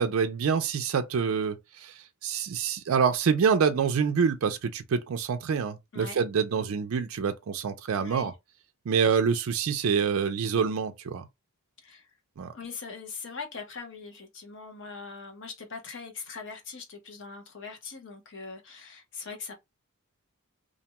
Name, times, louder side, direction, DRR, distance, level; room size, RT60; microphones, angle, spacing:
voice 1, 0.0-8.3 8.9-11.3 12.4-12.5, right 6 dB, 65° right, 0.4 m, -26 dB
voice 2, 8.0-8.3 11.8-12.1 12.5-19.5, left 4 dB, 55° left, 0.9 m, -41 dB
2.5 x 2.2 x 2.8 m
head